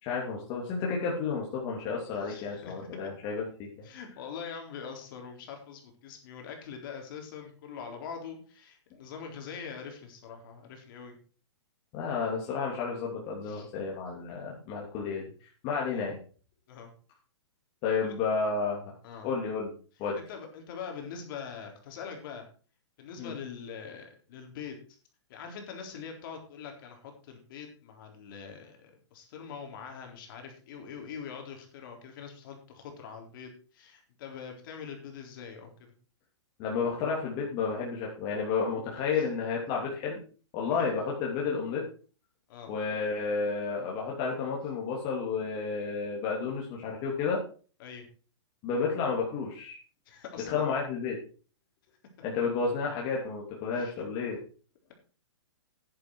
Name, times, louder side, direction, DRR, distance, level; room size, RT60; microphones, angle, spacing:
voice 1, 0.0-3.9 11.9-16.2 17.8-18.8 19.2-19.7 20.0-20.2 23.2-23.3 36.6-40.2 40.5-41.8 42.7-47.4 48.6-49.8 50.5-51.2 52.2-54.4, left 5 dB, 30° left, -3 dB, 2.9 m, -31 dB
voice 2, 2.2-2.9 3.8-11.2 13.4-13.7 15.9-16.1 16.7-16.9 18.0-18.2 19.0-19.3 20.1-22.5 23.0-24.8 25.3-35.9 39.1-39.3 40.7-40.9 42.5-42.7 47.8-48.0 50.1-50.7 53.8-53.9, left 6 dB, 45° left, 3 dB, 3.9 m, -43 dB
10.0 x 10.0 x 4.7 m, 0.39 s
hypercardioid pair, 150°, 15 cm